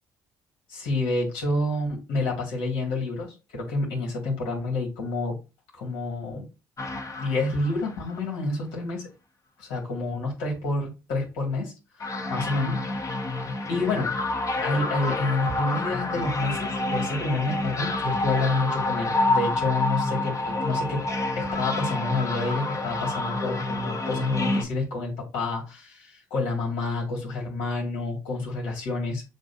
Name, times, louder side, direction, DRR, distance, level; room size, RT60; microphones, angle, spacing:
voice 1, 0.7-5.4 5.7-6.4 7.2-9.0 9.6-11.7 12.0-12.9 13.7-14.2 14.6-21.0 21.4-29.2, left 2 dB, 80° left, 2.1 m, -28 dB
sound 1, 6.8-8.2 12.0-24.6, left 2 dB, 35° left, 1.0 m, -28 dB
7.4 x 2.6 x 2.7 m
hypercardioid pair, 60°, 9 cm